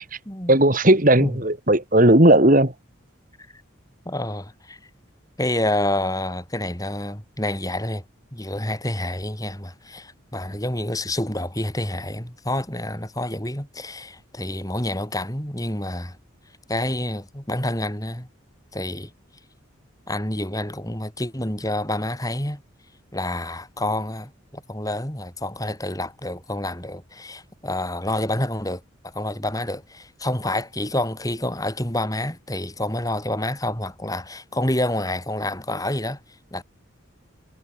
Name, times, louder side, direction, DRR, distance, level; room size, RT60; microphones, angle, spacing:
voice 1, 0.5-2.7, right 1 dB, 40° right, 3.1 m, -16 dB
voice 2, 4.0-4.8 5.4-8.0 8.3-16.2 16.7-18.3 18.7-19.1 20.1-22.6 23.1-28.8 29.1-36.2 36.5-36.6, left 1 dB, 15° left, 6.5 m, -28 dB
head